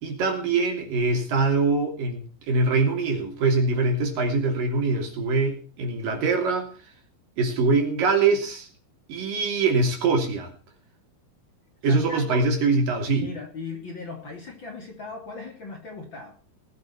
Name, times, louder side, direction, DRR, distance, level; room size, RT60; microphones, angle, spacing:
voice 1, 0.0-6.7 7.4-8.7 9.1-10.5 11.8-13.3, right 3 dB, 65° right, 4 dB, 4.6 m, -23 dB
voice 2, 11.8-12.5 13.1-16.4, left 3 dB, 35° left, 2 dB, 3.3 m, -38 dB
19.5 x 8.6 x 5.9 m, 0.37 s
omnidirectional pair, 4.3 m